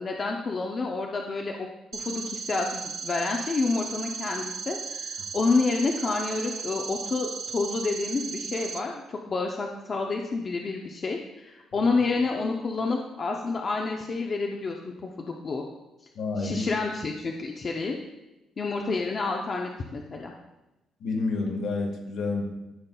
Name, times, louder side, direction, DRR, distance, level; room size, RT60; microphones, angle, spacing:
voice 1, 0.0-1.7 1.9-14.8 15.0-15.6 16.4-18.0 18.6-20.3, left 3 dB, 25° left, 1 dB, 0.5 m, -29 dB
sound 1, 1.9-8.8, right 5 dB, 40° right, 0.6 m, -36 dB
voice 2, 16.1-16.7 21.0-22.4, left 3 dB, 60° left, 2 dB, 1.3 m, -29 dB
13.0 x 5.2 x 2.2 m, 0.98 s
cardioid pair, 175°, 0 cm